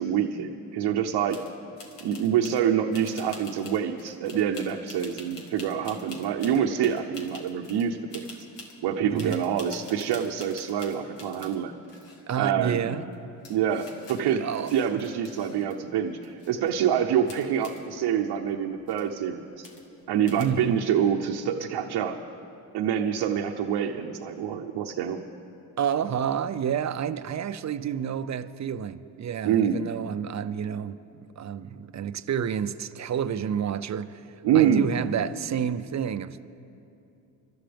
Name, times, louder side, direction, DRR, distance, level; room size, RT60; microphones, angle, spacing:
voice 1, 0.0-1.4 2.0-8.2 8.8-11.7 12.4-12.9 13.5-14.4 14.7-19.7 20.1-22.2 22.7-25.2 29.4-29.8 34.4-34.9, right 8 dB, 70° right, 0.9 m, -26 dB
sound 1, 1.3-1.5 1.8-2.6 2.9-7.9 8.1-8.8 9.2-11.6 11.8-12.5 13.1-13.2 13.4-15.7 16.1-16.7 17.3-17.8 18.5-18.6 18.8-19.1 19.6-20.0 20.3-20.4, left 3 dB, 75° left, 2.1 m, -46 dB
voice 2, 9.0-9.4 12.3-13.1 14.2-15.0 20.4-20.8 25.8-36.5, right 8 dB, 40° right, 0.6 m, -30 dB
25.0 x 12.5 x 3.5 m
supercardioid pair, 60°, 43 cm